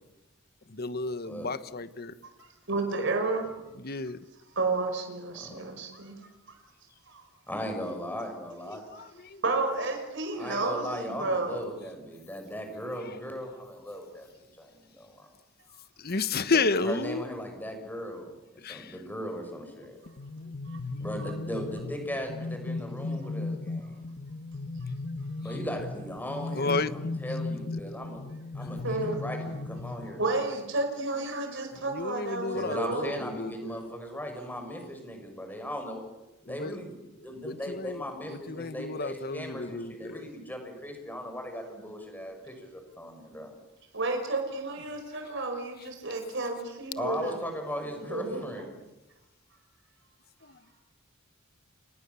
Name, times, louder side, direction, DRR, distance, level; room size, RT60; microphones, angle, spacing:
voice 1, 0.7-2.1 3.8-4.2 8.7-9.4 16.0-17.2 18.6-18.9 26.5-26.9 27.8-27.9 31.9-33.9 36.5-36.8 37.4-40.2 50.4-50.5, left 3 dB, 50° left, 13 dB, 1.2 m, -32 dB
voice 2, 2.7-3.6 4.6-6.2 7.1-7.2 9.4-11.6 20.7-20.8 25.5-25.6 28.8-29.2 30.2-33.2 43.9-47.4 48.0-48.7, right 3 dB, 65° right, 4 dB, 5.4 m, -31 dB
voice 3, 7.5-8.8 10.4-15.3 16.5-18.3 18.7-20.0 21.0-24.0 25.4-28.2 28.5-30.2 32.5-36.0 36.5-37.0 37.2-43.5 47.0-48.8, equal, 10° left, 4 dB, 6.4 m, -38 dB
sound 1, 20.1-30.5, left 3 dB, 65° left, 1.2 m, -36 dB
30.0 x 26.5 x 7.1 m, 0.98 s
head